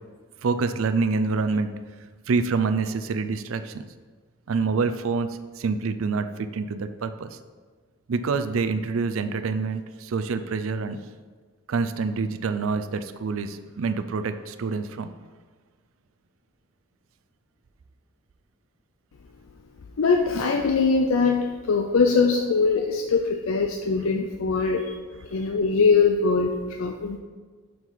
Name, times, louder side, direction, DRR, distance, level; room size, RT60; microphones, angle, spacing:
voice 1, 0.4-1.7 2.3-3.9 4.5-7.4 8.1-11.0 11.7-15.1, right 4 dB, 80° right, 10 dB, 0.4 m, -26 dB
voice 2, 20.0-24.9 25.3-27.2, left 4 dB, 80° left, 3 dB, 0.5 m, -22 dB
7.2 x 6.2 x 3.9 m, 1.5 s
head